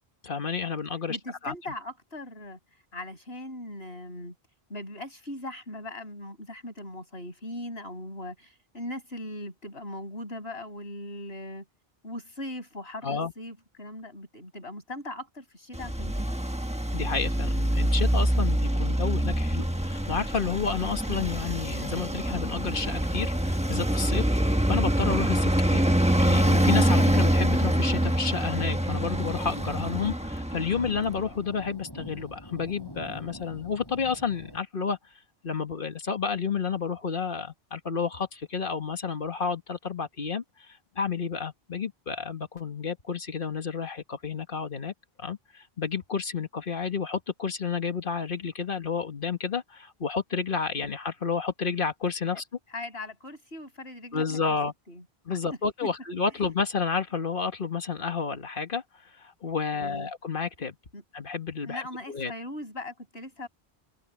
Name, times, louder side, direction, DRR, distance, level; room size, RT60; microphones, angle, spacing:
voice 1, 0.2-1.2 1.4-1.5 13.0-13.3 16.9-24.2 24.7-35.0 35.4-52.4 54.1-54.7 55.3-58.8 59.2-60.8 61.1-61.8 62.1-62.3, left 5 dB, 55° left, 1.8 m, -31 dB
voice 2, 1.1-2.6 2.9-4.3 4.7-11.7 12.0-16.4 52.3-52.4 52.7-54.2 54.9-55.4 55.8-55.9 59.7-60.1 60.9-61.0 61.7-63.5, left 1 dB, 75° left, 6.5 m, -39 dB
Traffic noise roadway noise, 15.7-31.2, right 1 dB, 5° right, 1.2 m, -25 dB
sound 1, 18.6-34.6, equal, 20° left, 8.1 m, -48 dB
omnidirectional pair, 1.0 m